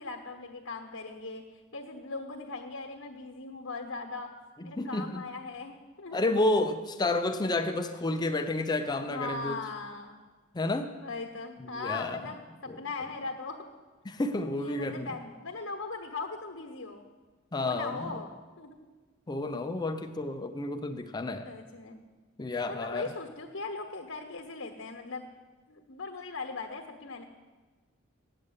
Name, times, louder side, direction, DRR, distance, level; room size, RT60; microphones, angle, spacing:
voice 1, 0.0-1.4 1.7-4.3 4.6-6.2 9.0-10.2 11.0-13.6 14.6-17.1 17.6-18.7 21.4-22.0 22.7-25.3 25.7-27.2, left 3 dB, 65° left, 1 dB, 1.2 m, -39 dB
voice 2, 4.6-5.2 6.1-9.6 10.5-10.9 11.6-12.3 12.7-12.8 14.0-15.1 17.5-18.2 19.3-21.5 22.4-23.0, left 2 dB, 20° left, 7 dB, 0.5 m, -30 dB
8.8 x 8.5 x 8.1 m, 1.3 s
head